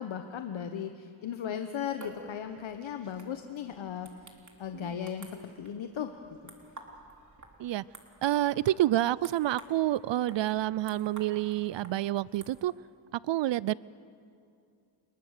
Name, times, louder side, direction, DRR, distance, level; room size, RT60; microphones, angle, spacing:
voice 1, 0.0-6.5, left 8 dB, 70° left, 7 dB, 1.2 m, -37 dB
sound 1, 1.8-12.6, right 2 dB, 35° right, 3.6 m, -52 dB
voice 2, 8.2-12.7 13.1-13.7, right 14 dB, 65° right, 21 dB, 0.5 m, -28 dB
28.5 x 20.0 x 6.7 m, 2.5 s
cardioid pair, 70°, 48 cm